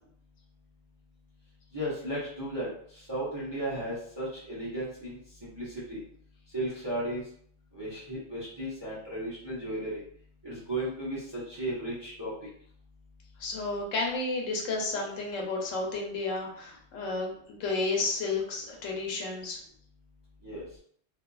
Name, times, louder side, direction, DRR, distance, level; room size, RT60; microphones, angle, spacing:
voice 1, 1.7-6.0 6.5-7.2 7.7-10.0 10.4-12.3 20.4-20.6, right 1 dB, 30° right, -8 dB, 0.6 m, -35 dB
voice 2, 13.4-19.6, left 3 dB, 85° left, 0 dB, 1.0 m, -32 dB
2.6 x 2.3 x 2.3 m, 0.63 s
omnidirectional pair, 1.3 m